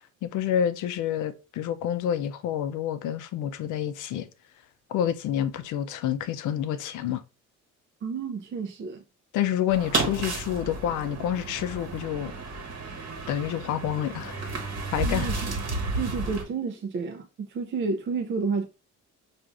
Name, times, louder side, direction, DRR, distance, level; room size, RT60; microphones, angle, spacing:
voice 1, 0.2-4.3 4.9-7.2 9.3-12.3 13.3-14.4 14.9-15.3, left 10 dB, 80° left, 0.5 m, -28 dB
voice 2, 8.0-9.0 15.0-15.5 16.0-18.7, right 4 dB, 40° right, 0.5 m, -30 dB
sound 1, 9.7-16.4, right 3 dB, 55° right, 1.1 m, -32 dB
4.5 x 2.5 x 2.4 m
cardioid pair, 90°, 30 cm